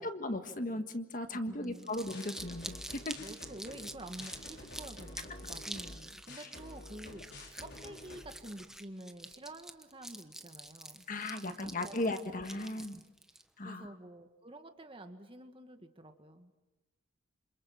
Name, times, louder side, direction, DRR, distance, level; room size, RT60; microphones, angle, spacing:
voice 1, 0.0-3.2 6.4-6.5 11.1-13.0 13.6-13.9, left 1 dB, 40° left, 8 dB, 1.6 m, -37 dB
voice 2, 1.3-1.9 3.2-11.1 11.4-12.3 12.8-13.0 13.6-16.5, right 1 dB, 25° right, 7 dB, 2.0 m, -49 dB
Crumpling crinkling, 1.6-13.4, right 1 dB, ahead, 1.1 m, -47 dB
sound 1, 2.1-8.2, left 1 dB, 55° left, 5.5 m, -49 dB
28.0 x 27.0 x 7.5 m, 1.1 s
head